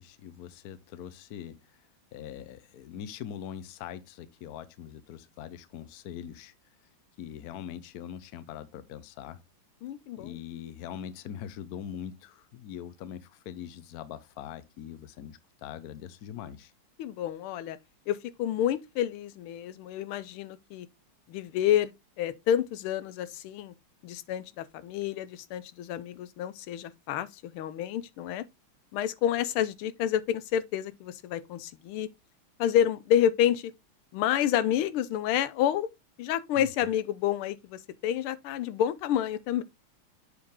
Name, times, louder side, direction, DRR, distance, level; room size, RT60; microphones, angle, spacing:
voice 1, 0.0-1.6 2.1-6.5 7.2-9.4 10.2-16.7 36.6-36.9, left 9 dB, 60° left, 1.0 m, -42 dB
voice 2, 9.8-10.4 17.0-17.8 18.1-20.9 21.3-21.9 22.2-23.7 24.0-28.4 28.9-32.1 32.6-33.7 34.1-35.9 36.2-39.6, left 10 dB, 90° left, 1.5 m, -29 dB
7.3 x 4.8 x 3.6 m
omnidirectional pair, 2.3 m